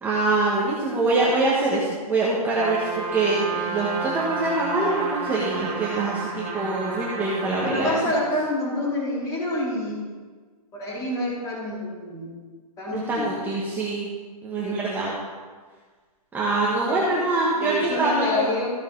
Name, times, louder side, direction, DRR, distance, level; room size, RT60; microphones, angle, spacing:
voice 1, 0.0-8.0 12.9-14.1 14.4-15.1 16.3-18.5, right 2 dB, 10° right, -6 dB, 1.5 m, -24 dB
Trumpet, 2.6-7.8, right 3 dB, 30° right, 2.6 m, -31 dB
voice 2, 7.6-10.0 10.7-12.3 12.8-13.3 14.6-14.8 16.9-17.2 17.6-18.7, left 1 dB, 20° left, -5 dB, 3.6 m, -27 dB
14.5 x 7.8 x 4.0 m, 1.5 s
hypercardioid pair, 150°, 20 cm